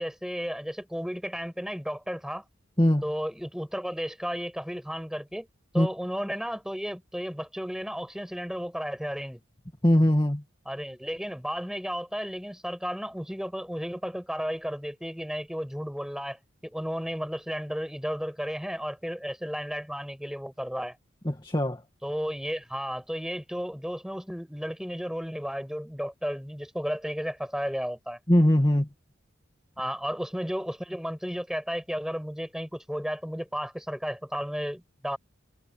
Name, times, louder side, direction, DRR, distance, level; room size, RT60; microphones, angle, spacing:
voice 1, 0.0-2.4 3.0-5.5 5.7-9.4 10.7-21.0 22.0-28.2 29.8-35.2, equal, 5° right, 7.2 m, -33 dB
voice 2, 2.8-3.1 5.8-5.9 9.8-10.4 21.3-21.8 28.3-28.9, left 1 dB, 20° left, 2.0 m, -21 dB
head